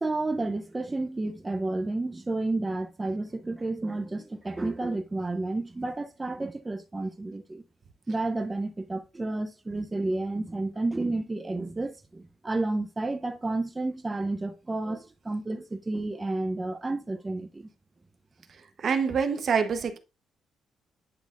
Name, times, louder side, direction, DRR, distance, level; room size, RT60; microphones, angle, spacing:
voice 1, 0.0-7.6 8.1-17.7, right 2 dB, 20° right, 0.6 m, -31 dB
voice 2, 18.8-20.0, right 6 dB, 50° right, 0.9 m, -25 dB
10.5 x 4.0 x 2.5 m
cardioid pair, 90°, 0 cm